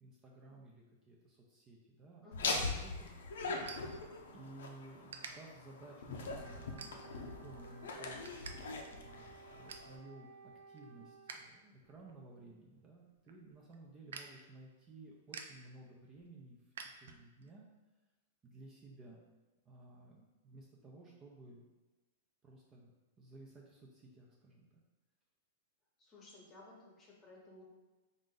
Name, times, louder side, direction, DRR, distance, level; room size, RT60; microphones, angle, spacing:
voice 1, 0.0-2.9 3.4-8.3 8.9-17.7 18.4-19.2 19.6-21.7 22.4-22.9 23.2-24.8, right 2 dB, 20° right, -2 dB, 0.5 m, -56 dB
voice 2, 2.2-2.7 26.0-27.6, left 2 dB, 20° left, -3 dB, 0.9 m, -57 dB
Laughter, 2.3-10.0, left 3 dB, 85° left, 0.6 m, -42 dB
sound 1, 3.6-4.6 5.1-5.3 5.9-6.1 6.8-7.3 7.7-8.5 8.8-8.9 9.3-9.9 10.4-11.5 11.8-17.5, right 6 dB, 85° right, 0.4 m, -51 dB
Wind instrument woodwind instrument, 6.2-11.5, right 6 dB, 55° right, 1.1 m, -57 dB
3.9 x 2.5 x 3.8 m, 1.2 s
supercardioid pair, 155°, 0 cm